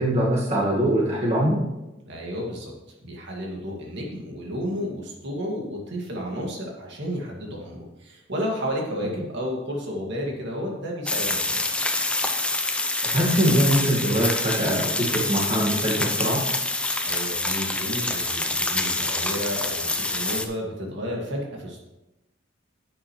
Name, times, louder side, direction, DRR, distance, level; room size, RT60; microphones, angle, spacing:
voice 1, 0.0-1.6 13.1-16.4, right 1 dB, 35° right, -4 dB, 1.8 m, -22 dB
voice 2, 2.1-2.7 3.0-11.6 17.1-21.8, equal, 60° right, -1 dB, 2.1 m, -32 dB
sound 1, 11.1-20.5, left 2 dB, 5° left, 0.6 m, -26 dB
11.0 x 8.8 x 3.2 m, 0.97 s
head